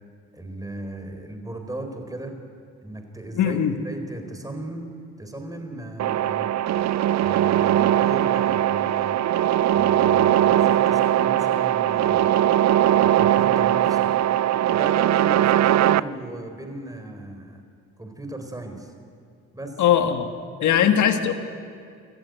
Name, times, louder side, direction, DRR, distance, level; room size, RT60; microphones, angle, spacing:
voice 1, 0.3-2.4 2.8-3.6 3.8-4.9 5.2-6.5 7.2-9.2 9.7-12.5 13.0-14.1 14.7-17.6 18.0-18.9 19.5-19.8 20.6-20.9, right 1 dB, 10° right, 5 dB, 4.0 m, -36 dB
voice 2, 3.4-3.7 19.8-20.3 20.6-21.3, left 9 dB, 75° left, 7 dB, 1.7 m, -19 dB
sound 1, 6.0-16.0, right 12 dB, 60° right, 0.6 m, -20 dB
25.5 x 14.5 x 9.3 m, 2.3 s
cardioid pair, 90°, 30 cm